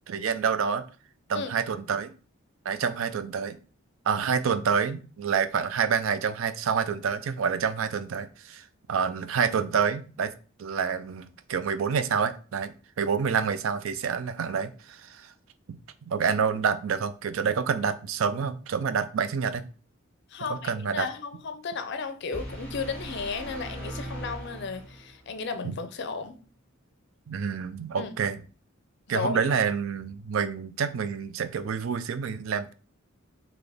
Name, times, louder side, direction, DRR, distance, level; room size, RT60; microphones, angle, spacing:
voice 1, 0.1-0.9 1.3-2.1 2.6-3.6 4.1-10.3 10.6-15.3 15.7-15.8 16.0-19.6 20.4-21.1 25.6-25.7 27.3-28.4 29.1-32.7, right 6 dB, 70° right, 12 dB, 0.4 m, -28 dB
voice 2, 20.3-26.4 27.9-28.1 29.1-29.4, left 4 dB, 55° left, 9 dB, 0.5 m, -34 dB
sound 1, 22.3-25.3, right 1 dB, 5° left, 1.1 m, -39 dB
3.8 x 2.9 x 3.4 m, 0.38 s
head